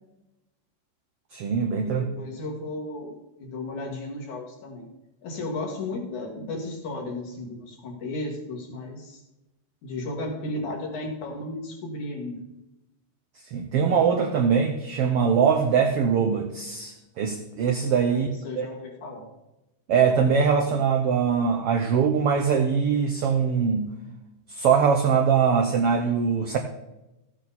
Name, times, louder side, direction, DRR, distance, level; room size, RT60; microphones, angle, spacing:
voice 1, 1.3-2.0 13.5-18.3 18.6-18.7 19.9-23.9 24.5-26.6, right 6 dB, 85° right, 3 dB, 1.3 m, -22 dB
voice 2, 1.8-4.9 5.2-9.2 9.8-12.5 18.1-19.2, left 2 dB, 65° left, 0 dB, 3.5 m, -34 dB
14.5 x 8.6 x 4.2 m, 0.97 s
omnidirectional pair, 3.8 m